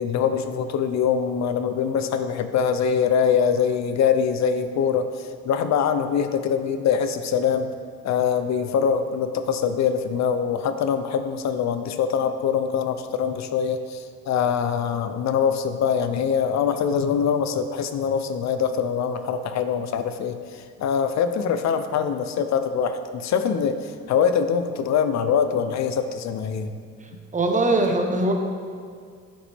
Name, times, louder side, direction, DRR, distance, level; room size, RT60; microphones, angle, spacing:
voice 1, 0.0-7.7 8.0-26.7, left 7 dB, 65° left, 9 dB, 0.5 m, -23 dB
voice 2, 27.3-28.3, right 2 dB, 25° right, 3 dB, 1.0 m, -21 dB
9.7 x 5.9 x 3.4 m, 2.1 s
cardioid pair, 90°, 30 cm